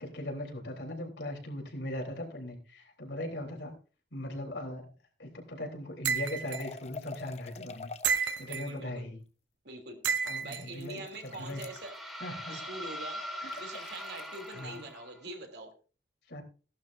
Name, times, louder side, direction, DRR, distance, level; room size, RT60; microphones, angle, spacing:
voice 1, 0.0-3.7 4.1-4.9 5.2-7.9 8.4-9.2 10.2-11.6 12.2-12.6 13.4-13.7 14.5-14.8 16.3-16.4, left 1 dB, 80° left, 1 dB, 3.6 m, -39 dB
sound 1, 6.0-6.6 8.0-8.7 10.0-10.6, right 6 dB, 90° right, 0.8 m, -30 dB
sound 2, 6.4-8.5 10.3-11.9 13.5-14.6, left 4 dB, 35° left, 0.6 m, -46 dB
voice 2, 8.5-9.0 9.6-10.0 10.4-12.0 12.5-13.2 13.6-15.7, right 2 dB, 70° right, 3 dB, 2.9 m, -44 dB
sound 3, 11.0-15.3, equal, ahead, 2.0 m, -42 dB
16.5 x 11.5 x 2.6 m, 0.36 s
head